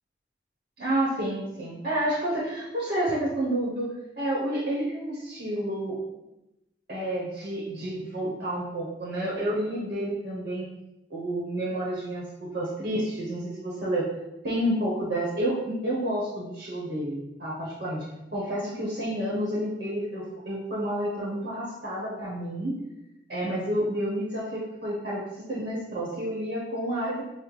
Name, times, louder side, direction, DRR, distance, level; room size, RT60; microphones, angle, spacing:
voice 1, 0.8-6.2 6.9-10.7 11.1-14.1 14.4-18.0 18.3-22.8 23.3-25.2 25.5-27.2, right 1 dB, 55° right, -6 dB, 0.9 m, -30 dB
5.5 x 2.1 x 3.1 m, 0.94 s
head